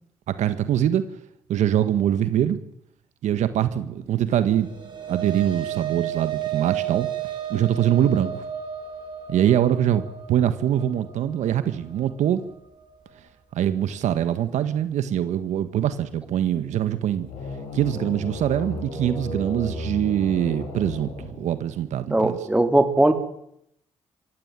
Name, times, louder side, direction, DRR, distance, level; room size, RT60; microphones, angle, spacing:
voice 1, 0.3-1.1 1.5-2.6 3.2-4.7 5.1-7.1 7.5-8.4 9.3-10.0 10.3-12.4 13.5-17.3 17.7-22.4, right 10 dB, 75° right, 11 dB, 1.6 m, -23 dB
sound 1, 4.4-12.9, right 10 dB, 40° right, 8.0 m, -33 dB
sound 2, 17.1-21.9, left 2 dB, 80° left, 7.2 m, -35 dB
voice 2, 22.1-23.1, right 1 dB, 10° right, 6 dB, 3.4 m, -19 dB
24.0 x 16.5 x 9.2 m, 0.78 s
supercardioid pair, 65°, 12 cm